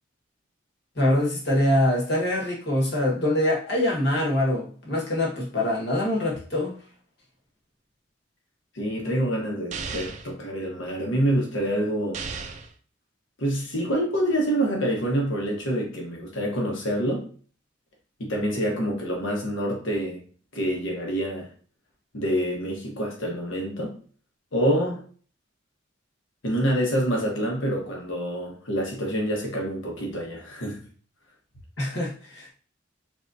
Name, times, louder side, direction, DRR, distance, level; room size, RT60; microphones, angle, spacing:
voice 1, 1.0-6.7 31.8-32.5, left 1 dB, 60° left, -2 dB, 1.3 m, -24 dB
voice 2, 8.7-12.2 13.4-17.3 18.2-20.2 20.5-21.5 22.1-23.9 24.5-25.0 26.4-30.8, equal, 80° left, -1 dB, 1.2 m, -26 dB
sound 1, 9.7-10.3 12.1-12.7, right 5 dB, 35° right, 0.4 m, -34 dB
4.0 x 3.6 x 2.6 m, 0.42 s
head